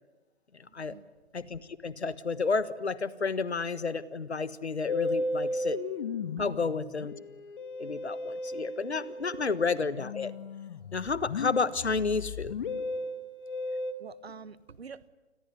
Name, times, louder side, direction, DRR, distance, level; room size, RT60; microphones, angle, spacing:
voice 1, 0.7-1.1 6.4-6.5 9.4-9.5 14.0-15.1, right 5 dB, 65° right, 19 dB, 1.3 m, -46 dB
voice 2, 1.3-5.8 6.4-7.1 7.8-10.3 10.9-12.5, left 4 dB, 75° left, 16 dB, 1.5 m, -31 dB
Musical instrument, 4.9-13.9, left 2 dB, 50° left, 2.6 m, -35 dB
29.0 x 21.5 x 9.5 m, 1.1 s
figure-of-eight pair, 125°, 33 cm